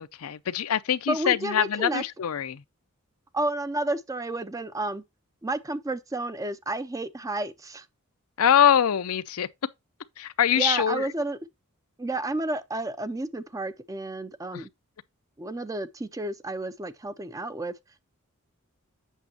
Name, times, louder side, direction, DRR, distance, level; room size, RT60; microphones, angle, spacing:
voice 1, 0.0-2.6 8.4-9.5 10.2-11.1 14.5-14.6, left 9 dB, 80° left, 0.5 m, -23 dB
voice 2, 1.1-2.0 3.3-5.0 5.4-7.9 10.6-11.4 12.0-14.7 15.4-17.8, right 2 dB, 15° right, 0.4 m, -31 dB
8.2 x 6.2 x 2.8 m
head